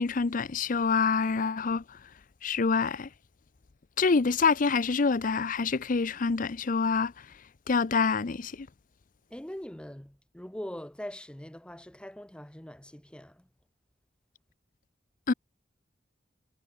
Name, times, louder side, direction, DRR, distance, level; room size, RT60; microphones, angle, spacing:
voice 1, 0.0-1.8 2.4-3.1 4.0-7.1 7.7-8.7 15.3-15.4, left 4 dB, 45° left, 0.6 m, -26 dB
voice 2, 9.3-13.4, equal, 5° left, 0.7 m, -42 dB
head